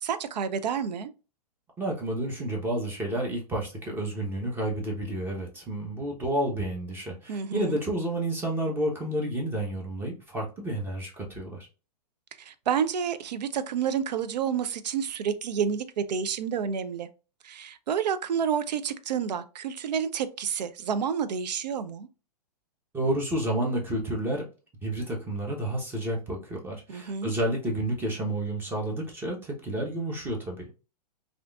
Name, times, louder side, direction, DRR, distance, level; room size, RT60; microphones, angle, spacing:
voice 1, 0.0-1.1 7.3-7.8 12.4-17.1 17.4-22.1 26.9-27.3, right 7 dB, 80° right, 0.4 m, -29 dB
voice 2, 1.8-11.7 22.9-24.5 24.8-30.7, right 1 dB, 10° right, 0.9 m, -30 dB
3.4 x 2.5 x 2.3 m
hypercardioid pair, 130°, 21 cm